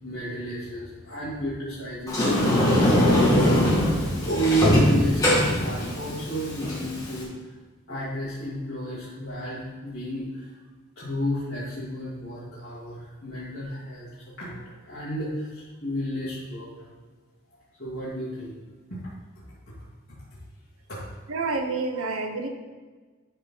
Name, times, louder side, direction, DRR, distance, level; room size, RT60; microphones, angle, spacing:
voice 1, 0.0-2.9 4.3-7.3 7.9-10.5 11.0-14.1 14.4-16.9 17.8-18.5 18.9-19.0 19.7-19.8 20.3-20.4 20.9-21.0 21.9-22.0, right 1 dB, 55° left, -12 dB, 2.7 m, -32 dB
Sliding door, 2.1-7.2, left 1 dB, 15° left, 2.1 m, -21 dB
voice 2, 21.3-22.5, right 3 dB, 85° right, 5 dB, 0.9 m, -28 dB
12.5 x 4.6 x 3.9 m, 1.4 s
head